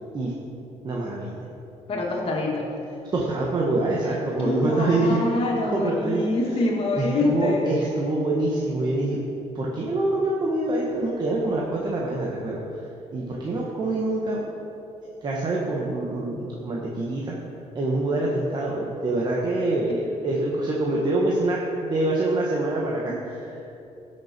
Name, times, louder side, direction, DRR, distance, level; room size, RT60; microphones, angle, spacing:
voice 1, 0.8-1.4 3.1-5.2 5.7-6.3 7.0-9.2 9.5-12.8 13.1-14.4 15.2-17.4 17.7-23.4, right 2 dB, 35° right, -4 dB, 1.4 m, -25 dB
voice 2, 1.9-2.7 4.4-7.7 23.1-23.2, left 2 dB, 50° left, -2 dB, 2.3 m, -26 dB
17.0 x 6.4 x 4.5 m, 2.9 s
cardioid pair, 120°, 12 cm